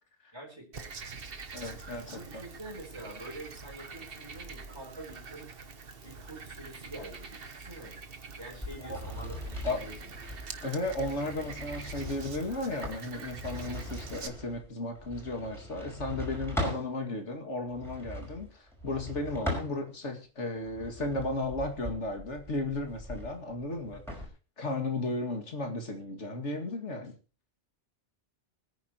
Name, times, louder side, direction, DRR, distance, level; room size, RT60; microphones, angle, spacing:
voice 1, 0.3-0.9 2.1-5.5 6.0-7.9 8.4-10.1 24.1-24.2, right 2 dB, 20° right, 0 dB, 4.5 m, -46 dB
Frog, 0.7-14.3, right 4 dB, 55° right, 1.3 m, -45 dB
voice 2, 1.5-2.4 8.8-9.0 9.6-9.8 10.6-24.0 24.6-27.1, left 2 dB, 80° left, 5 dB, 2.5 m, -34 dB
sound 1, 8.5-16.9 17.7-20.1 20.6-24.3, left 1 dB, ahead, 5.4 m, -40 dB
24.5 x 9.7 x 3.0 m, 0.32 s
omnidirectional pair, 1.2 m